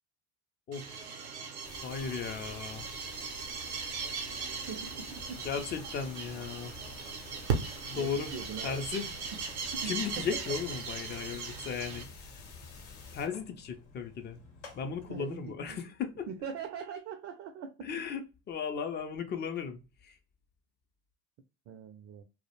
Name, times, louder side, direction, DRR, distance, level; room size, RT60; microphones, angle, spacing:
voice 1, 0.7-1.1 1.8-2.9 5.4-6.8 7.9-8.3 8.6-9.1 9.8-12.1 13.1-14.4 14.8-16.3 17.8-20.2, left 6 dB, 30° left, 0.4 m, -36 dB
sound 1, 0.7-12.0, right 5 dB, 90° right, 0.6 m, -38 dB
sound 2, 1.6-13.3, left 4 dB, 50° left, 0.8 m, -50 dB
voice 2, 4.7-5.2 7.9-8.8 9.8-9.9 15.1-15.8 16.3-17.9 21.7-22.2, right 7 dB, 45° right, 0.4 m, -41 dB
Mechanisms, 4.8-15.6, left 4 dB, 85° left, 0.8 m, -56 dB
2.2 x 2.0 x 2.9 m
hypercardioid pair, 75°, 33 cm